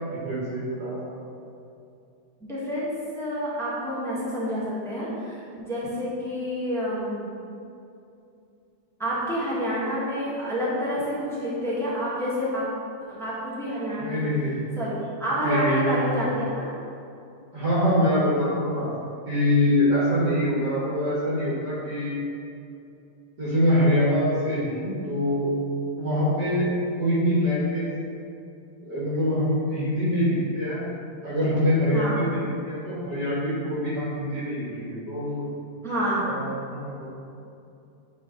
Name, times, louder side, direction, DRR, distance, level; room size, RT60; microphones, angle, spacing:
voice 1, 0.1-1.2 14.0-14.6 15.4-16.0 17.5-18.9 19.3-22.1 23.4-25.5 26.0-26.7 27.0-27.9 28.8-30.8 31.2-35.5 36.2-37.1, left 1 dB, 50° right, -9 dB, 2.0 m, -24 dB
voice 2, 2.4-7.3 9.0-12.6 13.1-14.3 14.8-14.9 15.2-16.7 31.9-32.3 35.8-36.3, equal, ahead, -8 dB, 1.0 m, -28 dB
8.7 x 3.8 x 3.8 m, 2.6 s
omnidirectional pair, 2.4 m